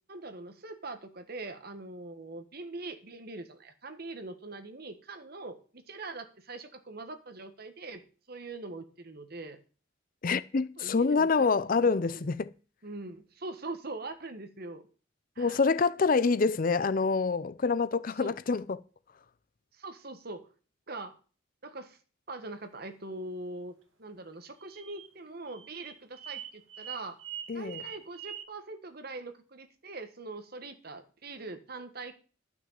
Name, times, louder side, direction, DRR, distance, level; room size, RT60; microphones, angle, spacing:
voice 1, 0.1-9.6 10.8-12.3 12.8-14.8 15.3-15.6 18.2-18.3 19.7-20.5 20.9-21.2 21.6-22.0 22.3-23.7 24.0-27.2 27.5-32.1, right 2 dB, 50° right, 1.5 m, -42 dB
voice 2, 10.2-12.5 15.4-18.8 27.5-27.8, left 4 dB, 45° left, 0.5 m, -26 dB
sound 1, 24.6-28.4, right 9 dB, 75° right, 1.9 m, -43 dB
12.0 x 6.2 x 7.4 m
head